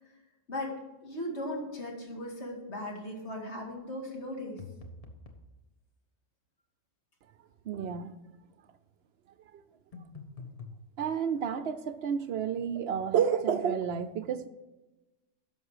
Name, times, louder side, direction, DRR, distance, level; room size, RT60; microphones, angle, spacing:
voice 1, 0.5-4.6, left 1 dB, 55° left, 0 dB, 2.4 m, -38 dB
sound 1, 4.6-5.5 9.9-10.8, left 4 dB, 30° left, 1.1 m, -45 dB
voice 2, 7.6-8.1 11.0-14.5, right 7 dB, 60° right, 12 dB, 0.8 m, -30 dB
11.0 x 6.6 x 4.9 m, 1.1 s
omnidirectional pair, 1.4 m